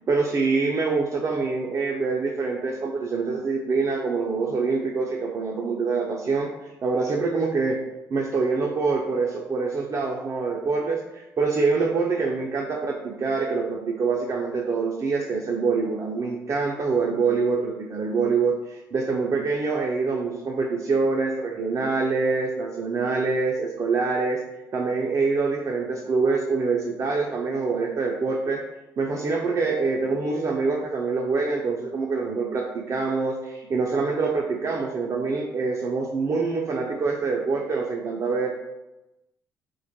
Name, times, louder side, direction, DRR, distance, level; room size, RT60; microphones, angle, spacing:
voice 1, 0.1-7.8 8.1-24.4 24.7-28.6 29.0-38.5, right 4 dB, 40° right, -1 dB, 0.3 m, -25 dB
2.2 x 2.1 x 2.7 m, 0.99 s
supercardioid pair, 65°, 8 cm